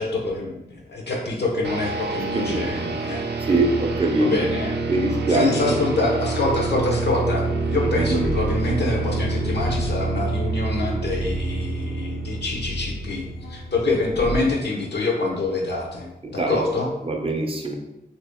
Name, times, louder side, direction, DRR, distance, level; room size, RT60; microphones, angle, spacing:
voice 1, 0.0-3.2 4.2-4.8 5.1-16.9, left 3 dB, 80° left, 0 dB, 0.8 m, -26 dB
sound 1, 1.6-13.9, right 3 dB, 85° right, 0.5 m, -27 dB
voice 2, 2.3-2.9 3.5-4.4 4.9-5.8 7.8-8.3 16.2-16.6 17.0-17.8, right 2 dB, 35° right, 2 dB, 0.5 m, -23 dB
sound 2, 6.4-14.4, left 1 dB, 55° left, 0.5 m, -35 dB
2.9 x 2.8 x 3.5 m, 0.93 s
wide cardioid pair, 110°, 17 cm